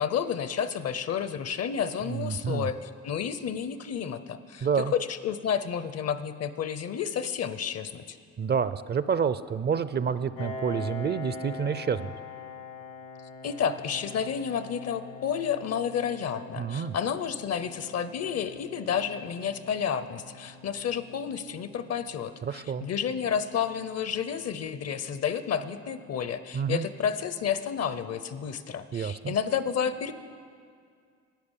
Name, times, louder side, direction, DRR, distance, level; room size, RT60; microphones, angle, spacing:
voice 1, 0.0-8.2 13.4-30.1, left 7 dB, 55° left, 13 dB, 0.7 m, -31 dB
voice 2, 2.1-2.7 4.6-4.9 8.4-12.1 16.6-16.9 22.4-22.9 26.5-26.8 28.9-29.4, right 7 dB, 35° right, 14 dB, 0.4 m, -28 dB
Piano, 10.4-25.7, left 4 dB, 75° left, 1.7 m, -44 dB
11.5 x 9.5 x 7.3 m, 2.2 s
cardioid pair, 90°, 30 cm